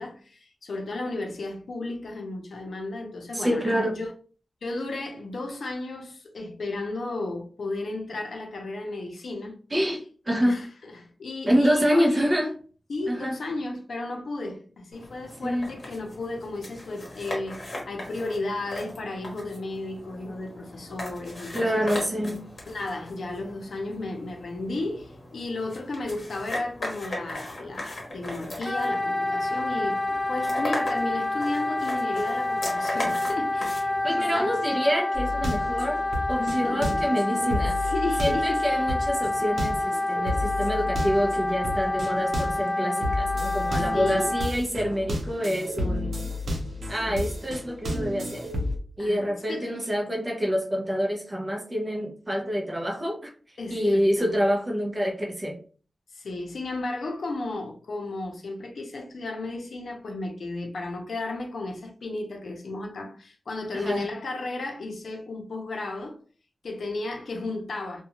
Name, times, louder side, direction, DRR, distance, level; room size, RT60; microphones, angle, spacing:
voice 1, 0.0-4.1 4.6-9.6 10.4-12.3 12.9-21.9 22.7-34.5 36.3-37.1 37.3-38.8 40.3-40.5 43.9-44.3 46.9-47.3 49.0-49.9 53.6-54.3 56.1-66.2 66.6-68.0, left 2 dB, 80° left, 0.6 m, -34 dB
voice 2, 3.3-3.9 9.7-10.0 10.3-10.6 11.5-12.5 13.1-13.4 15.4-15.7 21.5-22.4 34.0-36.0 36.3-37.8 38.2-46.1 46.9-48.5 49.0-53.3 53.7-55.6 63.7-64.1, equal, 20° right, 0.6 m, -26 dB
sound 1, 14.9-34.8, left 1 dB, 40° left, 1.0 m, -39 dB
Wind instrument woodwind instrument, 28.6-44.5, left 2 dB, 20° left, 0.3 m, -28 dB
sound 2, 35.1-42.7 43.0-48.8, left 1 dB, 80° right, 0.6 m, -32 dB
2.4 x 2.2 x 2.9 m
wide cardioid pair, 120°, 0 cm